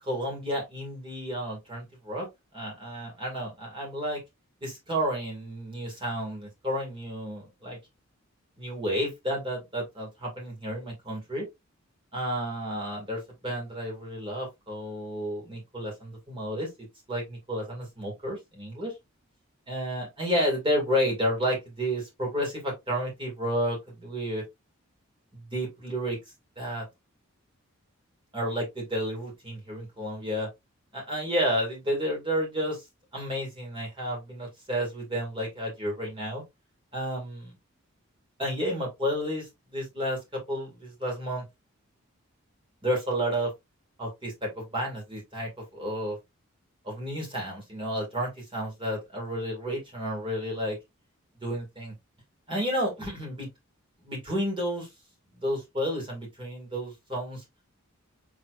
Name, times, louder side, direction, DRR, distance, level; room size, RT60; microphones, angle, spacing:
voice 1, 0.0-2.3 2.5-4.2 4.6-7.8 8.6-11.5 12.1-16.7 17.1-18.9 19.7-24.4 25.5-26.2 26.6-26.8 28.3-30.5 30.9-32.8 33.1-36.4 36.9-37.5 38.4-41.4 42.8-43.5 44.0-46.2 46.8-50.8 51.4-51.9 52.5-53.5 54.0-54.9 55.3-57.4, equal, 25° right, 2.1 m, -31 dB
4.8 x 3.7 x 2.4 m
head